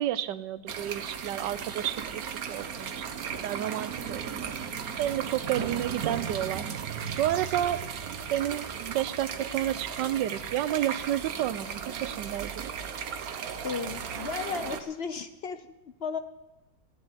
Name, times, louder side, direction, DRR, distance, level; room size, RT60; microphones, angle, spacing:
voice 1, 0.0-3.0 3.4-4.2 5.0-6.7 7.2-7.8 8.3-12.7, right 12 dB, 80° right, 16 dB, 1.3 m, -31 dB
sound 1, 0.7-14.8, right 7 dB, 60° right, 1.3 m, -36 dB
voice 2, 13.6-16.2, left 6 dB, 60° left, 10 dB, 0.6 m, -35 dB
15.5 x 7.1 x 9.7 m, 1.0 s
omnidirectional pair, 1.9 m